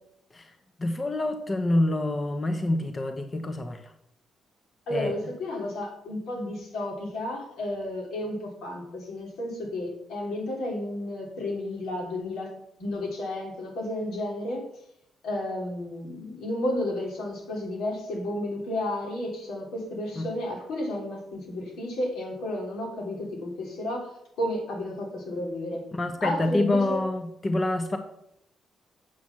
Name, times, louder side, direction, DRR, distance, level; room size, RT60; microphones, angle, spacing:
voice 1, 0.8-3.9 4.9-5.1 20.2-20.3 25.9-28.0, left 1 dB, 25° left, 6 dB, 0.9 m, -27 dB
voice 2, 4.9-12.5 12.8-14.6 15.2-24.1 24.4-25.9 26.2-27.0, left 1 dB, 90° left, -1 dB, 3.4 m, -32 dB
7.7 x 6.0 x 7.2 m, 0.76 s
cardioid pair, 125°, 0 cm